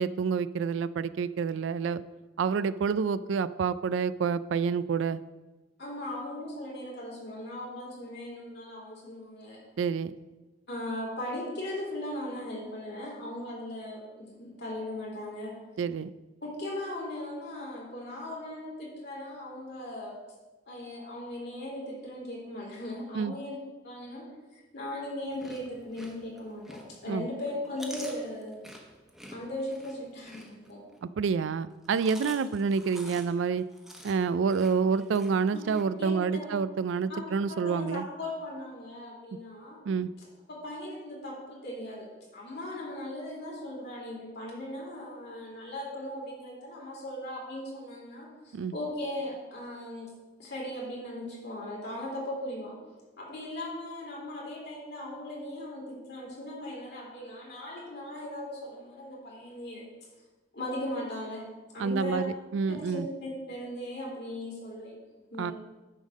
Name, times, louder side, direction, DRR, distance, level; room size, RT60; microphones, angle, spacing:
voice 1, 0.0-2.0 2.4-5.2 9.8-10.1 15.8-16.1 23.1-23.3 27.1-27.3 31.0-33.7 34.0-38.1 39.9-40.1 48.5-48.7 61.8-63.1 65.4-65.5, right 5 dB, 70° right, 16 dB, 0.3 m, -28 dB
voice 2, 5.8-9.6 10.7-15.5 16.4-20.1 20.7-23.6 23.8-24.2 24.5-28.6 29.3-30.8 35.5-35.6 36.0-36.4 37.1-37.2 37.5-39.8 40.5-42.1 42.3-50.1 50.4-52.7 53.2-59.9 60.5-61.4 61.7-62.2 62.8-65.0 65.3-65.5, left 1 dB, 60° left, -3 dB, 2.7 m, -38 dB
Chewing mastication, 25.2-27.1 27.5-31.0 31.7-35.8, equal, ahead, 1.0 m, -48 dB
9.8 x 3.5 x 6.4 m, 1.2 s
head